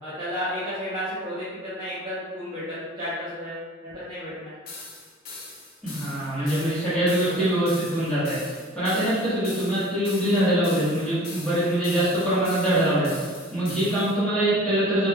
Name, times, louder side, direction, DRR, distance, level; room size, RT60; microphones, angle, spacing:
voice 1, 0.0-4.5 6.4-6.6 7.0-7.5, equal, 20° right, -13 dB, 0.7 m, -33 dB
sound 1, 4.7-14.2, left 3 dB, 50° left, 0.5 m, -41 dB
voice 2, 5.8-15.1, right 1 dB, 5° left, -13 dB, 1.2 m, -24 dB
3.1 x 2.7 x 2.2 m, 1.5 s
head